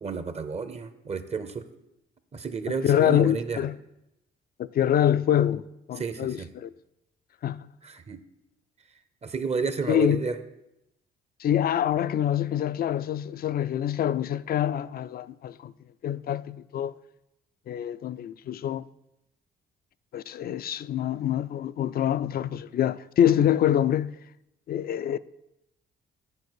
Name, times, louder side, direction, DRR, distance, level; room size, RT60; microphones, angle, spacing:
voice 1, 0.0-1.6 2.3-3.7 6.0-6.5 7.8-8.2 9.2-10.4, right 5 dB, 35° right, 0.7 m, -31 dB
voice 2, 2.8-3.8 4.6-6.7 7.4-7.7 9.9-10.2 11.4-15.7 16.0-16.9 17.7-18.9 20.1-24.2 24.7-25.2, left 10 dB, 50° left, 0.4 m, -25 dB
9.8 x 4.4 x 6.2 m
cardioid pair, 90°, 20 cm